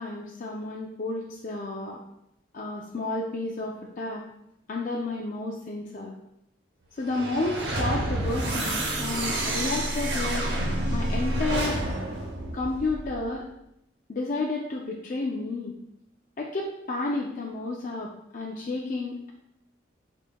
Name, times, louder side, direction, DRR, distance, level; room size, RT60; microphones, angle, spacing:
voice 1, 0.0-2.0 2.5-4.3 4.7-6.1 7.0-10.4 10.9-11.8 12.5-13.5 14.1-15.7 16.4-19.3, left 2 dB, 40° left, -2 dB, 0.4 m, -31 dB
sound 1, 7.0-13.3, right 1 dB, 60° right, 0.9 m, -29 dB
5.2 x 4.1 x 2.2 m, 0.79 s
head